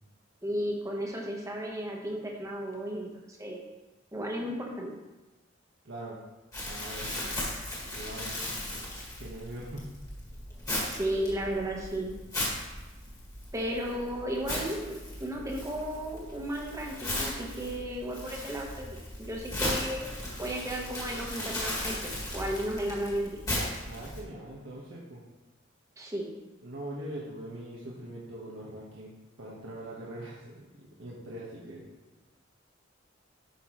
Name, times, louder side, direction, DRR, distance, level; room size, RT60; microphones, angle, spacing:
voice 1, 0.4-3.7 4.1-4.9 10.9-12.1 13.5-20.1 20.4-23.4 26.0-26.3, equal, 15° right, -1 dB, 1.3 m, -34 dB
voice 2, 5.8-6.2 6.6-7.4 7.9-8.6 9.2-9.9 23.8-25.2 26.6-29.1 29.4-30.7 31.0-31.9, right 1 dB, 90° right, -5 dB, 1.5 m, -42 dB
Crumpling crinkling, 6.5-24.2, left 1 dB, 20° left, 2.1 m, -37 dB
11.0 x 5.8 x 3.2 m, 1.1 s
head